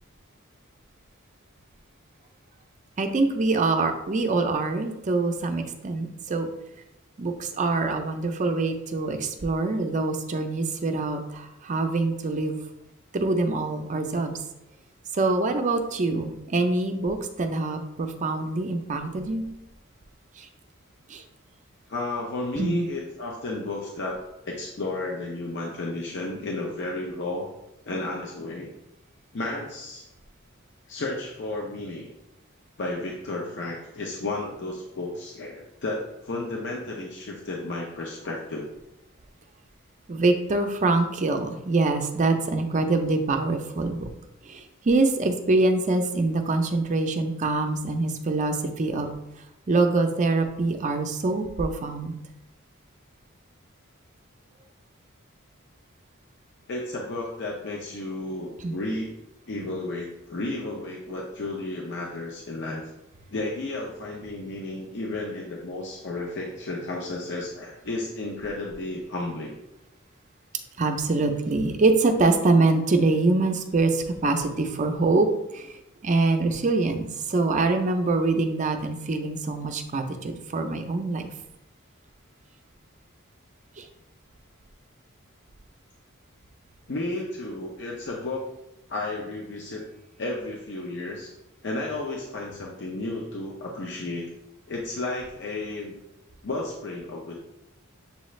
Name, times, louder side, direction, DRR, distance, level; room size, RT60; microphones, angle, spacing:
voice 1, 3.0-6.5 7.2-12.6 13.1-14.4 15.1-19.5 20.4-20.5 21.1-21.2 22.6-22.9 40.1-44.1 44.5-49.1 49.7-52.1 58.6-58.8 70.8-75.3 75.5-75.7 76.0-81.3 83.8-83.9, right 3 dB, 35° right, 6 dB, 0.5 m, -24 dB
voice 2, 21.9-24.2 24.5-27.5 27.9-28.7 29.3-30.1 30.9-32.1 32.8-38.7 56.7-59.2 59.5-62.9 63.3-69.5 86.9-88.5 88.9-89.8 90.2-91.3 91.6-94.3 94.7-95.9 96.4-97.3, left 2 dB, 55° left, -2 dB, 0.6 m, -32 dB
6.9 x 2.4 x 3.1 m, 0.89 s
head